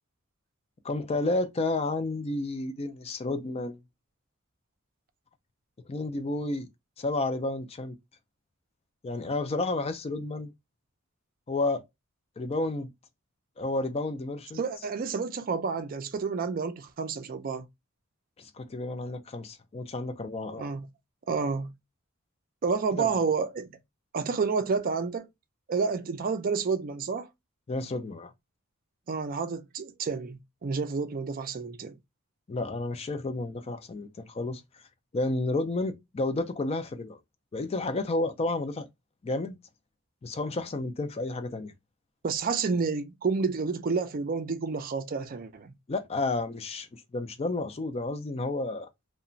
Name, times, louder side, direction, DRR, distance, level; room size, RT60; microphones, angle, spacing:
voice 1, 0.8-3.8 5.9-6.7 7.0-8.0 9.0-10.5 11.5-11.8 12.4-12.9 13.6-14.6 18.4-20.7 22.9-23.1 27.7-28.3 32.5-34.6 35.1-37.2 37.5-38.9 39.2-39.6 40.2-41.7 45.9-48.9, left 2 dB, 30° left, 0.4 m, -31 dB
voice 2, 14.6-17.7 20.5-20.9 21.3-21.7 22.6-23.7 24.1-25.3 25.7-27.3 29.1-32.0 42.2-45.7, right 5 dB, 40° right, 0.4 m, -30 dB
2.9 x 2.1 x 2.6 m
head